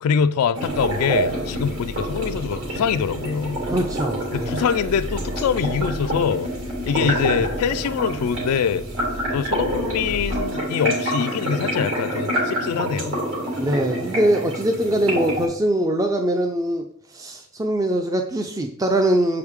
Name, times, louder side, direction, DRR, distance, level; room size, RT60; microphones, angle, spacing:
voice 1, 0.0-3.6 4.3-6.5 6.8-8.8 9.3-13.2, left 7 dB, 85° left, 0.3 m, -24 dB
sound 1, 0.5-15.5, right 1 dB, 70° right, 2.9 m, -27 dB
sound 2, 0.7-10.4, equal, 50° right, 1.3 m, -36 dB
voice 2, 3.7-4.6 7.0-7.2 13.5-19.4, right 1 dB, 15° right, 0.3 m, -22 dB
7.2 x 4.8 x 3.5 m
head